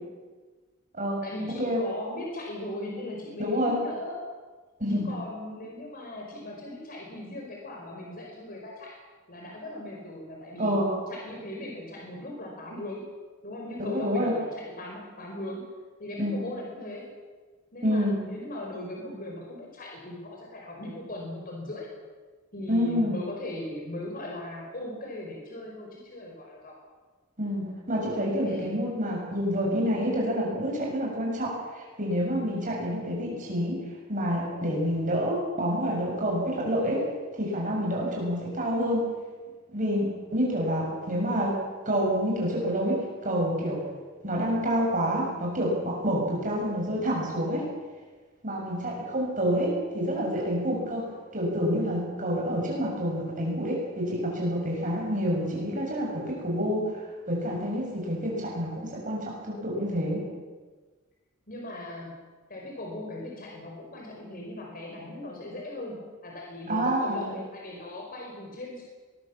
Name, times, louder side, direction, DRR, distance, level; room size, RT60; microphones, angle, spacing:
voice 1, 1.2-4.2 4.9-9.0 9.3-10.7 11.1-13.1 13.4-15.6 16.0-17.1 17.7-21.9 22.5-26.8 28.5-28.7 61.5-62.2 62.5-68.8, left 1 dB, 45° left, 0 dB, 5.1 m, -38 dB
voice 2, 3.4-3.8 4.8-5.1 10.6-10.9 13.8-14.3 16.2-16.4 17.8-18.2 22.7-23.1 27.4-33.8 34.1-37.0 37.4-39.0 39.7-41.5 41.9-43.8 44.2-47.7 48.4-51.0 51.3-60.2 66.7-67.3, equal, 40° right, -2 dB, 7.1 m, -28 dB
22.5 x 21.0 x 7.3 m, 1.4 s
head